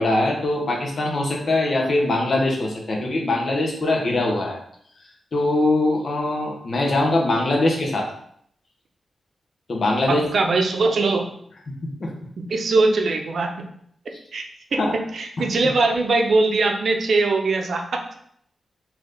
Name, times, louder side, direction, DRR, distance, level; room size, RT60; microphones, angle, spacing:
voice 1, 0.0-4.6 5.3-8.1 9.7-10.3 11.7-11.8 12.0-12.1 14.7-14.9 15.4-15.5, left 2 dB, 60° left, 0 dB, 1.1 m, -22 dB
voice 2, 10.1-11.3 12.4-13.7 14.3-18.0, right 3 dB, 70° right, 3 dB, 0.6 m, -21 dB
3.3 x 3.0 x 3.8 m, 0.67 s
cardioid pair, 60°, 0 cm